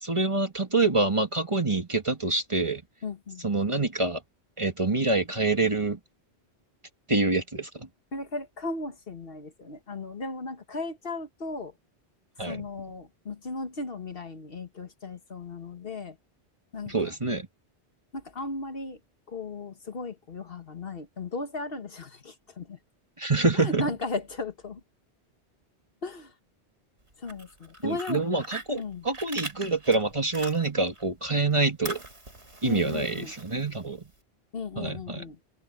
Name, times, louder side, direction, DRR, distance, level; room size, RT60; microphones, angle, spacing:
voice 1, 0.0-2.8 3.4-4.2 4.6-6.0 7.1-7.9 12.4-12.7 16.9-17.5 23.2-23.9 27.8-32.0 32.6-34.1 34.8-35.2, right 3 dB, 25° right, 1.9 m, -26 dB
voice 2, 3.0-3.4 8.1-11.7 12.4-16.2 16.7-17.1 18.1-19.0 19.3-22.8 23.5-24.8 26.0-26.3 27.2-28.2 28.8-29.1 32.6-33.3 34.5-35.4, left 3 dB, 55° left, 1.6 m, -36 dB
Fire, 27.1-31.0 31.3-34.1, right 2 dB, 80° right, 5.8 m, -41 dB
omnidirectional pair, 1.1 m